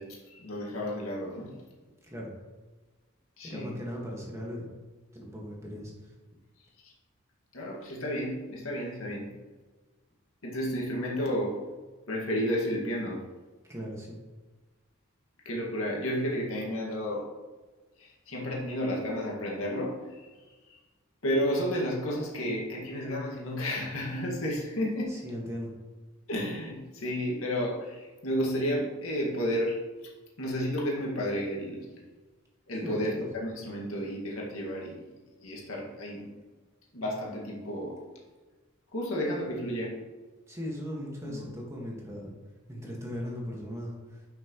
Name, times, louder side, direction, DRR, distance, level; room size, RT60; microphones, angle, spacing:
voice 1, 0.0-1.5 3.4-3.8 6.8-6.9 7.5-9.3 10.4-11.6 12.1-13.2 15.5-17.2 18.0-20.3 21.2-25.2 26.3-29.8 30.4-31.8 32.7-35.0 35.4-36.3 36.9-38.0 38.9-39.9 41.3-41.5, equal, 80° left, -2 dB, 2.0 m, -32 dB
voice 2, 2.0-2.3 3.4-4.7 5.1-6.1 13.7-14.2 25.1-25.7 32.8-33.2 40.5-42.3 42.7-44.3, equal, 15° right, -3 dB, 1.8 m, -38 dB
10.0 x 6.0 x 3.1 m, 1.3 s
head